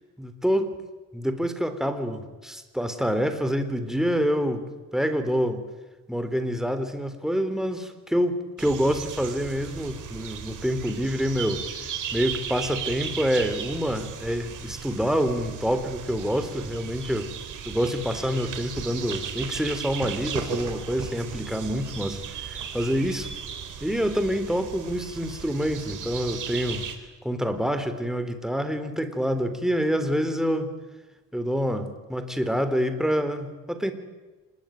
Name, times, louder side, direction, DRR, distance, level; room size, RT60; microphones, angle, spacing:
voice 1, 0.2-0.7 1.1-4.6 4.9-5.6 6.1-11.6 12.1-17.3 17.6-23.3 23.8-26.8 27.2-30.7 31.3-33.9, equal, ahead, 8 dB, 3.8 m, -27 dB
sound 1, 8.6-26.9, right 7 dB, 70° right, 4.4 m, -36 dB
26.5 x 21.0 x 9.3 m, 1.2 s
cardioid pair, 90°, 32 cm